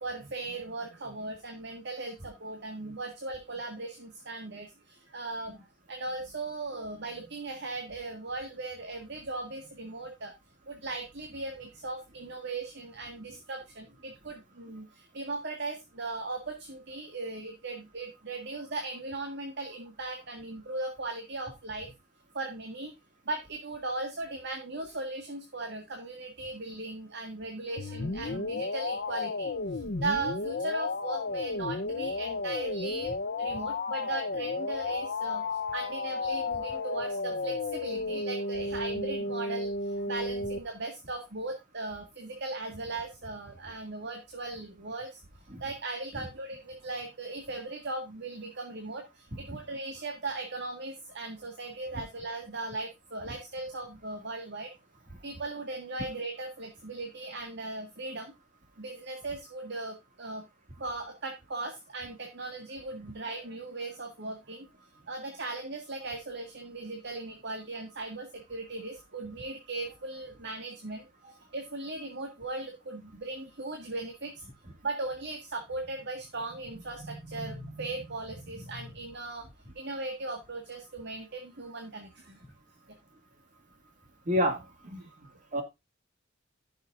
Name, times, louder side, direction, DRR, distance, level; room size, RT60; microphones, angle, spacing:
voice 1, 0.0-10.3 10.7-21.9 22.3-22.9 23.3-45.2 45.6-54.7 55.2-58.3 58.8-60.4 60.8-64.7 65.1-74.4 74.8-79.5 79.8-82.4 84.9-85.4, right 2 dB, 60° right, 3 dB, 1.8 m, -38 dB
sound 1, 27.8-40.6, left 3 dB, 55° left, 0.8 m, -33 dB
voice 2, 84.3-84.7 85.5-85.6, equal, 40° right, 5 dB, 2.4 m, -27 dB
15.0 x 6.5 x 2.5 m, 0.22 s
head